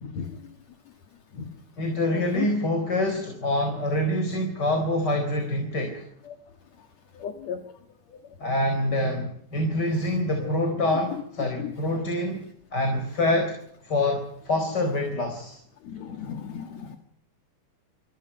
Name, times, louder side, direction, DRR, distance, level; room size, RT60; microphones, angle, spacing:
voice 1, 0.0-0.3 1.4-1.5 2.3-2.5 7.2-7.6 10.4-10.5 11.6-11.7 15.9-17.0, left 8 dB, 60° left, 5 dB, 3.0 m, -34 dB
voice 2, 1.8-6.1 8.4-12.4 12.7-13.6 13.8-15.6, left 1 dB, 30° left, 4 dB, 4.7 m, -26 dB
27.5 x 27.5 x 5.7 m, 0.70 s
omnidirectional pair, 3.5 m